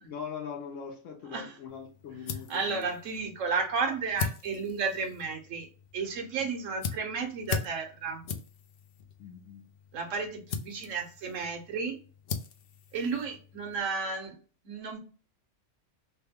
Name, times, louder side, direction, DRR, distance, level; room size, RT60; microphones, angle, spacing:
voice 1, 0.0-2.9 6.3-6.5 9.2-9.7, left 6 dB, 85° left, 1.1 m, -41 dB
sound 1, 1.7-13.8, left 6 dB, 60° left, 0.6 m, -40 dB
voice 2, 2.5-5.7 5.9-8.2 9.9-12.0 12.9-14.3 14.6-15.0, right 5 dB, 85° right, 1.2 m, -32 dB
3.1 x 2.1 x 3.4 m
omnidirectional pair, 1.3 m